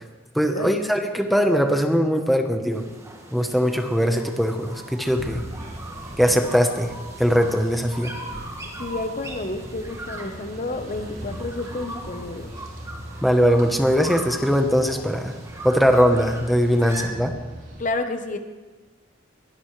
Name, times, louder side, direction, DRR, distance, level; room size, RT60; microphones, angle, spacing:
voice 1, 0.3-2.8 3.3-5.4 6.2-6.9 7.2-8.1 13.2-15.4 15.6-17.3, equal, ahead, 4 dB, 1.1 m, -20 dB
sound 1, 2.7-17.1, right 1 dB, 15° right, 1.9 m, -39 dB
sound 2, 5.0-17.8, equal, 50° right, 4.7 m, -40 dB
voice 2, 8.8-12.5 16.9-17.2 17.8-18.4, left 2 dB, 45° left, 7 dB, 1.1 m, -30 dB
22.0 x 17.5 x 3.3 m, 1.3 s
head